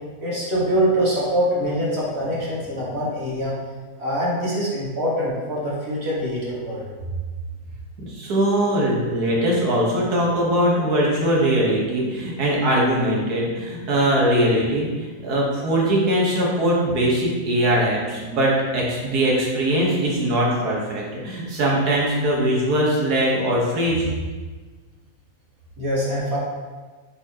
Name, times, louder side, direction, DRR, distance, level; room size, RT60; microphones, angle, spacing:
voice 1, 0.2-3.5 4.0-6.8 25.8-26.4, equal, 45° right, -7 dB, 1.9 m, -24 dB
voice 2, 8.0-24.1, right 1 dB, 85° right, -4 dB, 1.9 m, -21 dB
7.7 x 4.3 x 2.9 m, 1.4 s
omnidirectional pair, 1.6 m